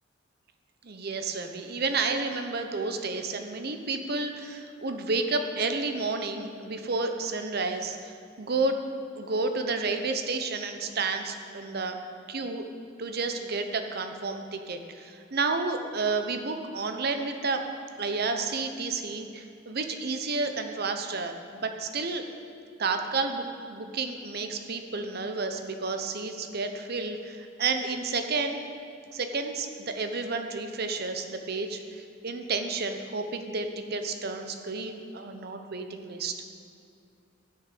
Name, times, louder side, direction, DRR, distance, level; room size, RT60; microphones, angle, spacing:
voice 1, 0.8-8.1 8.4-8.8 9.2-12.0 12.3-12.6 13.0-17.7 18.0-22.2 22.8-23.4 23.7-28.6 29.1-36.4, right 3 dB, 55° right, 6 dB, 0.8 m, -31 dB
13.0 x 6.5 x 5.9 m, 2.5 s
head